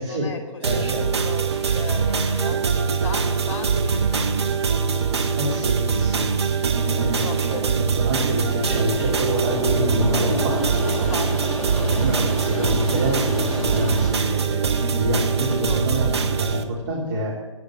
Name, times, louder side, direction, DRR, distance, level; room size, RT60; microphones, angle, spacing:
voice 1, 0.0-5.1 6.6-6.7 6.9-7.6 10.8-12.6 15.6-16.1, left 3 dB, 30° left, 5 dB, 2.7 m, -36 dB
voice 2, 0.6-1.0 5.4-6.3 6.9-11.1 11.9-17.3, equal, 40° right, -5 dB, 3.3 m, -27 dB
sound 1, 0.6-16.6, right 5 dB, 55° right, 1.6 m, -23 dB
sound 2, 5.0-14.1, equal, 5° left, 1.8 m, -31 dB
11.0 x 9.1 x 7.7 m, 1.4 s
figure-of-eight pair, 130°, 16 cm